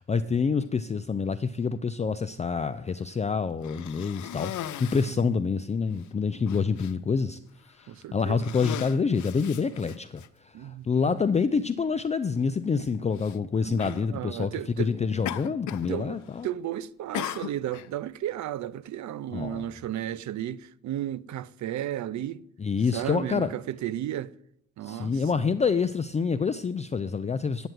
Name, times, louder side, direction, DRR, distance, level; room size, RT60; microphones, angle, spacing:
voice 1, 0.0-7.4 7.8-14.5 14.8-16.5 19.3-19.7 22.6-23.5 24.8-27.7, left 5 dB, 20° left, 0.5 m, -27 dB
Cough, 3.6-5.2 6.0-6.1 6.5-6.9 7.7-7.9 8.3-10.3 11.2-11.3 13.1-13.4 13.8-14.1 15.3-15.9 16.2-16.6 17.1-17.9, left 12 dB, 70° left, 0.7 m, -37 dB
voice 2, 7.9-8.6 10.5-11.2 13.5-14.9 15.9-22.4 22.9-24.3 24.8-25.4, right 12 dB, 70° right, 0.6 m, -34 dB
8.9 x 8.0 x 9.1 m
cardioid pair, 90°, 30 cm